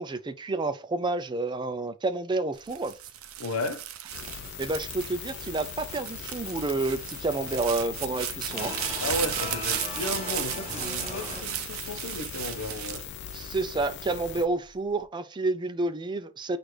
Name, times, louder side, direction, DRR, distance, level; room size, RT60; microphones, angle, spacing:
voice 1, 0.0-2.9 4.6-8.8 13.3-16.6, right 2 dB, 20° right, 0.3 m, -29 dB
sound 1, 2.6-13.9 14.5-15.0, right 11 dB, 75° right, 0.6 m, -35 dB
voice 2, 3.4-3.8 9.0-13.0, left 2 dB, 75° left, 0.8 m, -34 dB
sound 2, 4.1-14.5, left 9 dB, 50° left, 0.4 m, -40 dB
sound 3, 6.4-11.4, left 3 dB, 30° left, 1.2 m, -39 dB
6.0 x 2.5 x 3.2 m
head